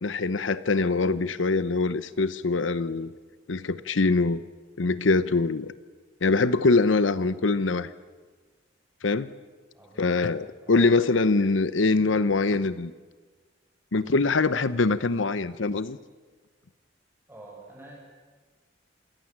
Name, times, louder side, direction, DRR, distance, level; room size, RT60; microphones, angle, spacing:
voice 1, 0.0-3.1 3.5-4.4 4.8-5.7 6.2-7.9 9.0-9.3 10.0-12.9 13.9-16.0, left 3 dB, 90° left, 15 dB, 0.8 m, -23 dB
voice 2, 9.7-10.1 10.6-10.9 17.3-18.0, right 1 dB, 10° right, -1 dB, 7.0 m, -47 dB
27.0 x 18.5 x 7.5 m, 1.4 s
head